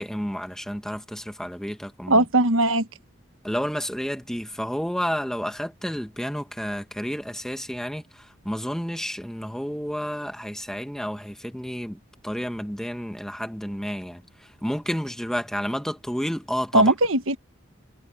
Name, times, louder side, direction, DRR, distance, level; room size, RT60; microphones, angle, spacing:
voice 1, 0.0-2.2 3.4-16.9, equal, 5° left, 1.6 m, -31 dB
voice 2, 2.1-2.9 16.7-17.4, right 2 dB, 80° right, 1.4 m, -19 dB
head